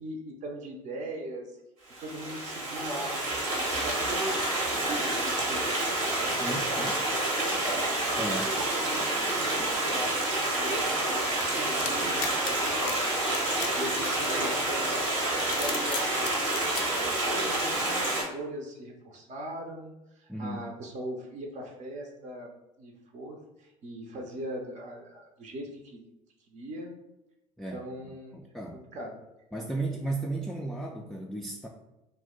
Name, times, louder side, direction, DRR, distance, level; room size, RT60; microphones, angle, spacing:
voice 1, 0.0-1.6 2.0-5.8 6.1-7.9 8.6-13.0 13.7-16.3 16.6-22.5 22.8-26.0 26.5-27.0 27.7-28.5 28.7-29.2, right 1 dB, 45° right, 1 dB, 0.6 m, -40 dB
Stream, 1.9-18.2, right 2 dB, 85° right, 0.9 m, -28 dB
voice 2, 6.3-6.9 8.2-8.5 20.3-20.6 27.6-27.8 28.3-28.8 29.5-31.7, right 2 dB, ahead, -1 dB, 0.3 m, -34 dB
sound 1, 11.4-14.9 15.4-16.8, left 7 dB, 65° left, 0.5 m, -38 dB
2.5 x 2.1 x 3.6 m, 0.92 s
hypercardioid pair, 60°, 17 cm